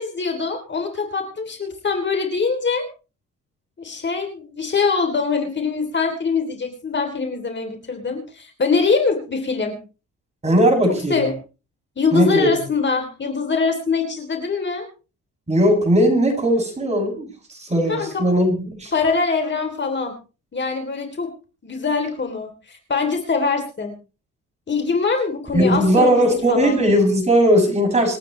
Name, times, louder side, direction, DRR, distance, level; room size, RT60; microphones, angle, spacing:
voice 1, 0.0-2.8 3.8-9.8 11.1-11.3 12.0-14.9 17.9-18.2 18.9-20.2 20.5-21.3 21.6-23.9 24.7-26.1 26.5-26.8, left 4 dB, 35° left, 4 dB, 3.4 m, -23 dB
voice 2, 10.4-11.2 12.1-12.5 15.5-18.9 25.5-28.2, equal, 20° right, 0 dB, 7.6 m, -18 dB
27.5 x 9.2 x 3.3 m, 0.34 s
cardioid pair, 90°, 30 cm